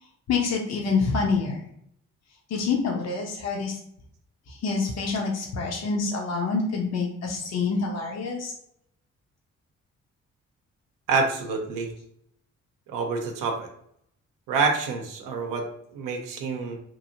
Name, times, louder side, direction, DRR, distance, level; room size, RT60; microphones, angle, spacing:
voice 1, 0.3-1.6 2.5-3.8 4.5-8.5, left 4 dB, 50° left, 0 dB, 0.8 m, -27 dB
voice 2, 11.1-11.9 12.9-13.7 14.5-16.8, right 4 dB, 80° right, 3 dB, 0.7 m, -27 dB
2.8 x 2.7 x 2.7 m, 0.70 s
hypercardioid pair, 45°, 33 cm